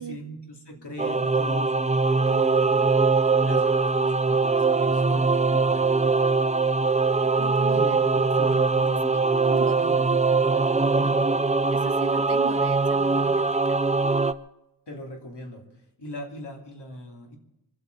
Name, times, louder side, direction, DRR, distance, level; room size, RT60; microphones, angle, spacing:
voice 1, 0.0-1.8 2.1-2.9 3.4-6.0 7.7-10.4 10.9-11.2 14.9-15.7 16.0-17.4, equal, 80° left, 2 dB, 3.1 m, -40 dB
Singing / Musical instrument, 1.0-14.3, right 4 dB, 15° right, 0.6 m, -22 dB
voice 2, 7.4-8.0 8.5-8.6 9.1-9.8 11.7-13.8, right 8 dB, 80° right, 12 dB, 0.9 m, -38 dB
25.0 x 8.7 x 6.6 m, 0.89 s
wide cardioid pair, 75°, 40 cm